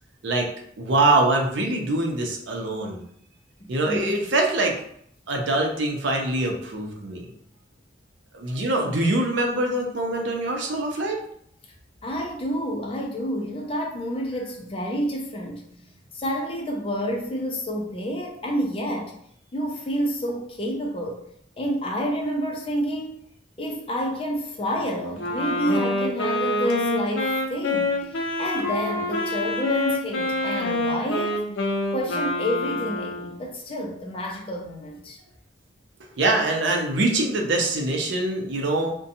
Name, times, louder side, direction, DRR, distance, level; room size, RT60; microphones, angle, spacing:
voice 1, 0.8-3.0 3.7-4.8 5.3-7.2 8.3-11.2 36.2-39.0, right 2 dB, 75° right, 1 dB, 0.5 m, -24 dB
voice 2, 3.6-4.1 12.0-15.7 16.1-19.1 19.5-21.2 21.6-23.2 23.6-31.4 31.9-35.2, equal, 30° left, 0 dB, 0.4 m, -29 dB
Wind instrument woodwind instrument, 25.2-33.4, left 2 dB, 85° left, 0.5 m, -26 dB
2.7 x 2.2 x 2.6 m, 0.66 s
head